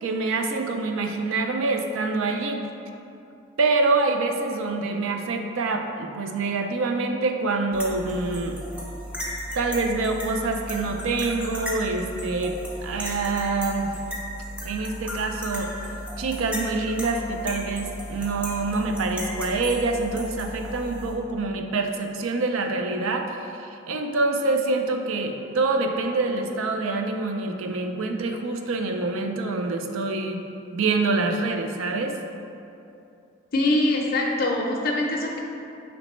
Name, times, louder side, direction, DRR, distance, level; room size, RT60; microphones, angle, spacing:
voice 1, 0.0-2.6 3.6-8.6 9.5-13.9 14.6-15.7 16.2-30.4 30.7-32.2, right 3 dB, 85° right, 4 dB, 0.4 m, -26 dB
sound 1, 7.7-21.1, equal, 5° right, 0.4 m, -35 dB
voice 2, 33.5-35.4, left 2 dB, 45° left, -1 dB, 0.5 m, -23 dB
5.1 x 3.2 x 3.0 m, 2.7 s
head